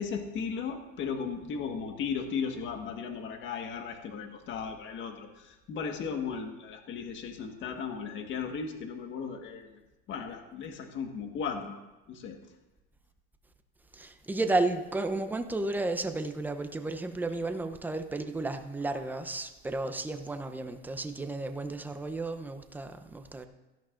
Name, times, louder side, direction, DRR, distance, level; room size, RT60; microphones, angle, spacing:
voice 1, 0.0-9.8 10.1-11.8 12.1-12.4, left 6 dB, 40° left, 1.5 m, -36 dB
voice 2, 13.9-23.5, right 2 dB, 5° right, 0.7 m, -33 dB
17.0 x 13.0 x 2.5 m
supercardioid pair, 135°, 29 cm